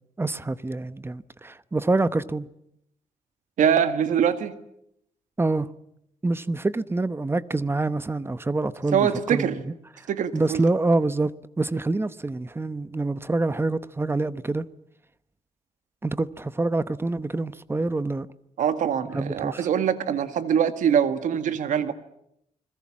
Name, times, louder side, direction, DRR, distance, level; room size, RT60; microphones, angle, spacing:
voice 1, 0.2-2.5 5.4-5.7 6.2-9.6 10.3-14.6 16.0-18.3 19.1-19.7, right 2 dB, 20° right, 0.9 m, -26 dB
voice 2, 3.6-4.5 8.9-9.6 10.1-10.6 18.6-21.9, right 8 dB, 90° right, 1.8 m, -23 dB
30.0 x 21.5 x 7.4 m
cardioid pair, 115°, 13 cm